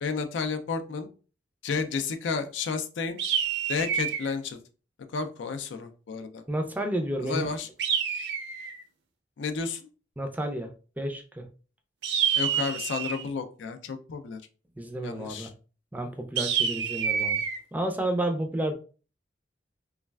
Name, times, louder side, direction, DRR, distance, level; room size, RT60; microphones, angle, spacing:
voice 1, 0.0-1.1 1.6-3.2 3.7-4.6 5.1-6.4 7.2-7.7 9.4-9.8 12.4-14.4 15.0-15.5, left 5 dB, 85° left, 8 dB, 0.4 m, -31 dB
sound 1, 3.2-4.3 7.8-8.8 12.0-13.3 16.4-17.6, right 7 dB, 70° right, 0.5 m, -28 dB
voice 2, 6.5-7.5 10.2-10.7 11.0-11.4 14.8-15.5 15.9-17.4 17.7-18.7, right 1 dB, 10° right, 5 dB, 0.3 m, -31 dB
3.1 x 2.4 x 2.2 m, 0.36 s
head